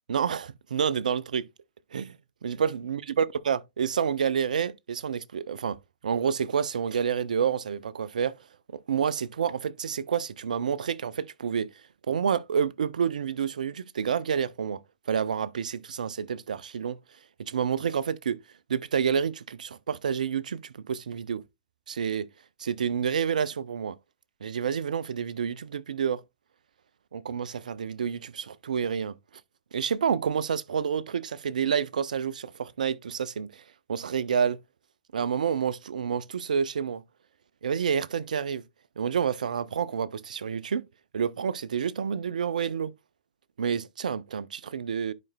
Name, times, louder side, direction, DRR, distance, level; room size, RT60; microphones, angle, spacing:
voice 1, 0.1-1.5 1.9-2.2 2.4-5.8 6.0-8.3 8.9-11.7 12.1-14.8 15.1-17.0 17.4-18.4 18.7-21.4 21.9-22.3 22.6-23.9 24.4-26.2 27.1-29.2 29.7-33.6 33.9-34.6 35.1-37.0 37.6-38.6 39.0-40.9 41.1-42.9 43.6-45.1, right 7 dB, 70° right, 0.5 m, -29 dB
10.5 x 5.0 x 2.2 m
figure-of-eight pair, 115°, 4 cm